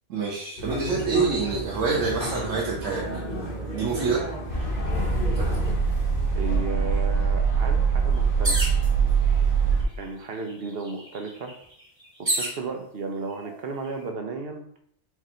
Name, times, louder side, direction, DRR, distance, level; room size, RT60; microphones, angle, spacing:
voice 1, 0.1-3.0 3.7-4.2 5.5-5.6, right 4 dB, 90° right, -3 dB, 1.3 m, -26 dB
sound 1, 0.6-5.7, equal, 40° left, 1.3 m, -33 dB
sound 2, 4.5-9.8, right 5 dB, 75° left, 2.2 m, -23 dB
voice 2, 6.4-8.6 10.0-11.5 12.2-14.6, right 3 dB, 55° right, 4 dB, 0.9 m, -34 dB
sound 3, 8.4-8.9 9.8-9.9 10.2-12.6 13.4-13.9, right 1 dB, 25° right, 1.0 m, -29 dB
4.7 x 2.6 x 4.3 m, 0.65 s
omnidirectional pair, 1.3 m